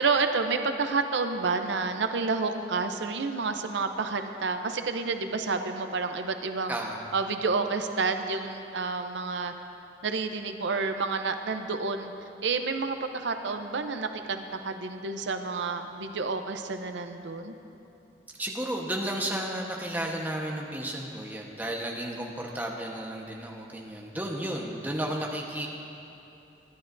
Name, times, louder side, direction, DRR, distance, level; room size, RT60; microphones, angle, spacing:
voice 1, 0.0-6.8 7.1-9.5 10.0-12.1 12.4-17.5, right 4 dB, 90° right, 7 dB, 0.6 m, -29 dB
voice 2, 6.7-7.0 18.4-25.7, right 1 dB, 10° right, -1 dB, 1.1 m, -33 dB
23.5 x 11.0 x 2.6 m, 2.8 s
head